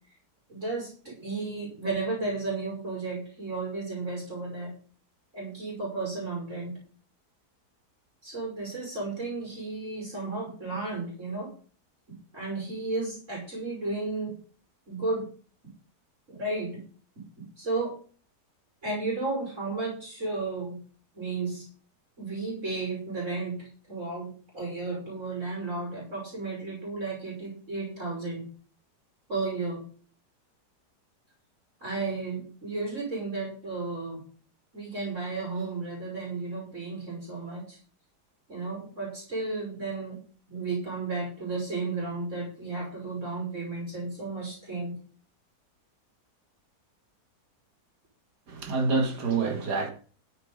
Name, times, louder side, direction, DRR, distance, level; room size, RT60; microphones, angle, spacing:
voice 1, 0.5-4.7 5.3-6.8 8.2-11.5 12.1-14.4 14.9-15.3 16.3-16.8 17.2-17.9 18.8-20.8 21.1-21.7 22.2-28.5 29.3-29.8 31.8-34.2 34.7-37.8 38.5-40.2 40.5-45.0, right 3 dB, 45° right, 6.3 m, -33 dB
voice 2, 48.5-49.9, right 4 dB, 75° right, 2.7 m, -27 dB
14.0 x 7.2 x 5.3 m
omnidirectional pair, 1.8 m